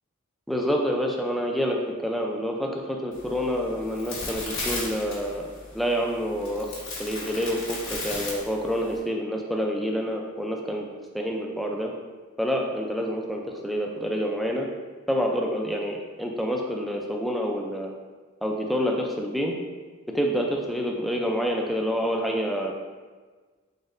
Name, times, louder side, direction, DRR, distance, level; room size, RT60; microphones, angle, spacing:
voice 1, 0.5-5.5 5.7-6.7 7.0-10.9 11.1-11.9 12.4-14.7 15.1-17.9 18.4-19.5 20.1-22.7, equal, ahead, 0 dB, 0.3 m, -27 dB
sound 1, 3.1-9.0, left 2 dB, 65° left, 1.4 m, -36 dB
4.1 x 3.9 x 2.5 m, 1.4 s
head